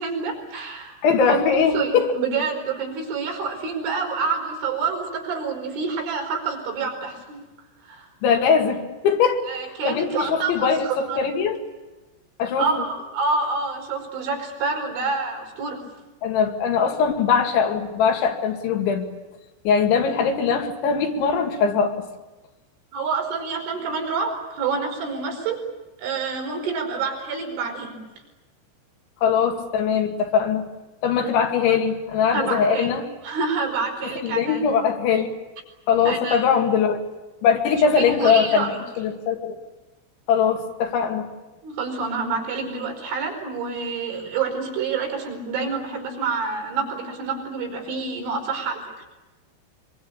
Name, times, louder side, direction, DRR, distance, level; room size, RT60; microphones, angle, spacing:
voice 1, 0.0-1.4 1.7-7.4 7.8-8.1 9.5-11.3 12.6-15.9 22.9-25.6 26.0-28.0 32.3-32.9 33.2-34.6 36.1-36.6 37.8-38.8 41.6-48.9, right 4 dB, 70° right, 2 dB, 7.4 m, -27 dB
voice 2, 1.0-2.1 8.2-9.4 9.9-11.6 12.4-12.7 16.2-19.0 19.7-22.0 29.2-30.7 31.0-33.1 34.2-35.3 35.9-37.0 37.4-38.7 39.0-39.5 40.3-41.3, left 6 dB, 70° left, 4 dB, 4.5 m, -21 dB
25.0 x 23.5 x 8.7 m, 1.1 s
omnidirectional pair, 5.7 m